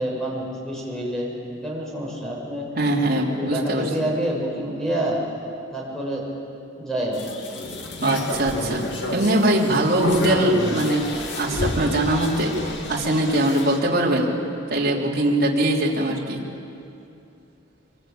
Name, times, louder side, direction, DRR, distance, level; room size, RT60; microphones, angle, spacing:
voice 1, 0.0-2.7 3.3-5.2 5.7-6.2 6.8-7.3, right 1 dB, 5° left, -3 dB, 6.8 m, -27 dB
voice 2, 2.8-4.1 8.0-8.9 9.1-11.1 11.3-12.6 12.9-14.3 14.7-16.4, right 1 dB, 55° right, -4 dB, 3.5 m, -21 dB
sound 1, 7.1-13.8, left 1 dB, 65° left, 2.6 m, -30 dB
25.0 x 23.0 x 8.8 m, 2.6 s
head